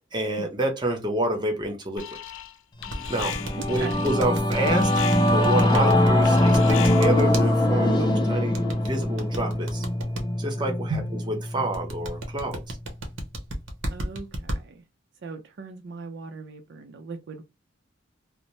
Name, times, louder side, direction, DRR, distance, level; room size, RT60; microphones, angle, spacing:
voice 1, 0.1-2.0 3.1-3.4 3.7-4.9 5.3-9.9 10.4-10.9 11.3-12.8, right 1 dB, 25° right, 0.7 m, -28 dB
Alarm, 2.0-2.6 2.8-7.3, left 11 dB, 80° left, 0.4 m, -37 dB
Singing / Musical instrument, 2.9-12.6, left 1 dB, 20° left, 0.5 m, -23 dB
sound 1, 2.9-7.4 8.5-10.2 11.7-14.6, right 1 dB, 85° right, 0.8 m, -33 dB
voice 2, 3.5-4.0 10.9-11.2 13.9-14.8 15.2-17.4, right 3 dB, 60° right, 0.4 m, -37 dB
2.7 x 2.0 x 3.0 m
head